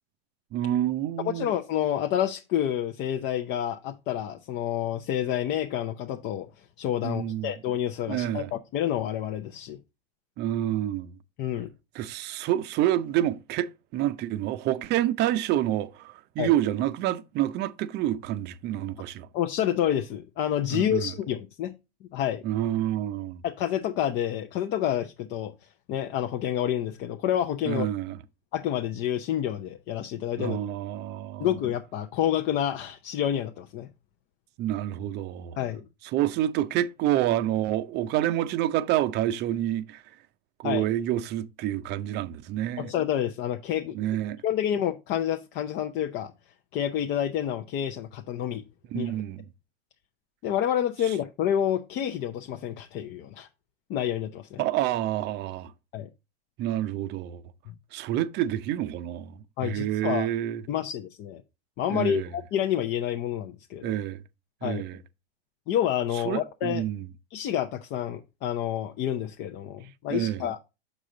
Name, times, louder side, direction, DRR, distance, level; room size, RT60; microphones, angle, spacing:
voice 1, 0.5-1.5 7.0-7.5 8.1-8.5 10.4-11.2 11.9-19.3 20.7-21.1 22.4-23.4 27.7-28.2 30.4-31.6 34.6-35.6 36.1-40.0 40.6-42.9 43.9-44.4 48.9-49.4 51.1-51.2 54.6-55.7 56.6-57.4 57.9-60.6 61.9-62.3 63.8-64.2 64.6-65.0 66.1-67.1 70.1-70.4, right 13 dB, 35° right, 0.6 m, -28 dB
voice 2, 1.3-6.5 6.8-9.8 11.4-11.7 16.4-16.5 19.3-21.7 22.1-22.4 23.4-25.5 25.9-27.9 28.5-30.6 31.4-33.9 35.6-35.8 40.6-40.9 42.8-43.9 44.4-46.3 46.7-48.6 48.9-49.2 50.4-53.5 53.9-54.6 55.9-56.1 59.6-60.3 60.7-61.4 61.8-63.9 64.6-64.8 65.7-66.8 67.3-70.6, left 10 dB, 35° left, 0.6 m, -28 dB
6.7 x 4.9 x 3.8 m
hypercardioid pair, 120°, 30 cm